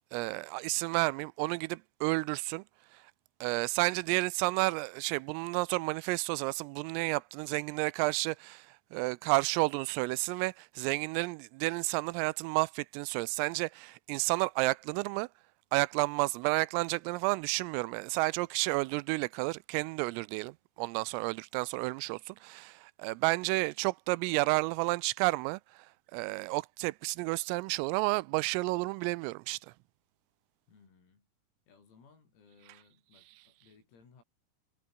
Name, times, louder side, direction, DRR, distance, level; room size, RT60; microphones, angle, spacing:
voice 1, 0.1-2.6 2.9-3.0 3.4-15.3 15.7-25.9 26.1-29.6, right 24 dB, 85° right, 3.1 m, -31 dB
voice 2, 30.7-31.3 31.7-34.2, left 5 dB, 90° left, 11.0 m, -62 dB
omnidirectional pair, 6.0 m